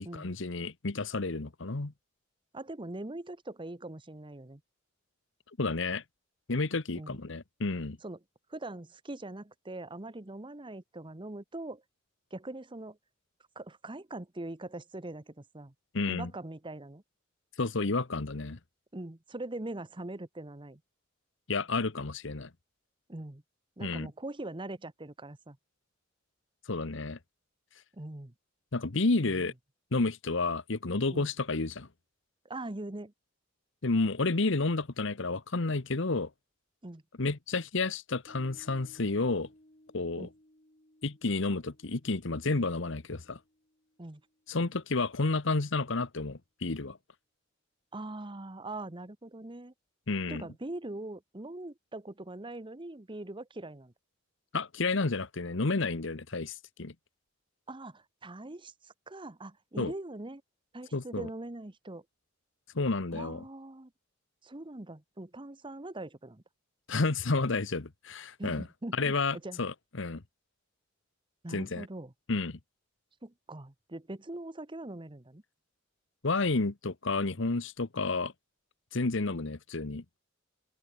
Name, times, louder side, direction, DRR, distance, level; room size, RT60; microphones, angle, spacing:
voice 1, 0.0-1.9 5.6-6.0 6.5-8.0 15.9-16.3 17.6-18.6 21.5-22.5 23.8-24.1 26.7-27.2 28.7-29.5 29.9-31.9 33.8-36.3 37.2-39.5 39.9-40.3 41.0-43.4 44.5-47.0 50.1-50.5 54.5-56.9 59.8-59.9 60.9-61.3 62.7-63.4 66.9-68.6 68.9-70.2 71.5-71.9 72.3-72.6 76.2-78.3 78.9-80.0, left 3 dB, 65° left, 1.1 m, -31 dB
voice 2, 2.5-4.6 6.9-7.2 8.0-8.2 8.5-11.8 12.3-13.0 13.5-15.7 16.1-17.0 18.9-20.8 23.1-23.4 23.8-25.6 27.9-28.3 29.2-29.4 31.1-31.3 32.5-33.1 36.8-37.0 40.2-40.3 44.0-44.2 47.9-49.7 50.3-53.9 57.7-60.4 60.7-62.0 63.1-63.9 64.4-66.4 68.4-69.1 69.4-69.6 71.4-72.1 73.2-75.4, right 2 dB, 25° right, 1.1 m, -42 dB
Piano, 38.3-45.0, left 1 dB, 40° left, 4.6 m, -62 dB
open air
head